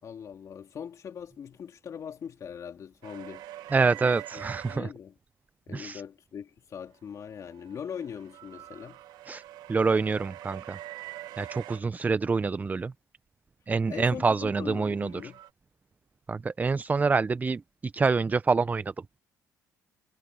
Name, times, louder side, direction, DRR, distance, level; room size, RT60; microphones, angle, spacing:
voice 1, 0.0-3.5 4.0-5.1 5.7-9.0 13.9-15.4, left 7 dB, 50° left, 2.8 m, -41 dB
sound 1, 3.0-4.8 7.2-11.8 14.2-15.5, right 14 dB, 80° right, 0.9 m, -44 dB
voice 2, 3.7-4.9 5.7-6.0 9.3-9.4 9.7-10.8 11.4-12.9 13.7-15.3 16.3-18.9, right 4 dB, 25° right, 0.5 m, -26 dB
supercardioid pair, 80°, 7 cm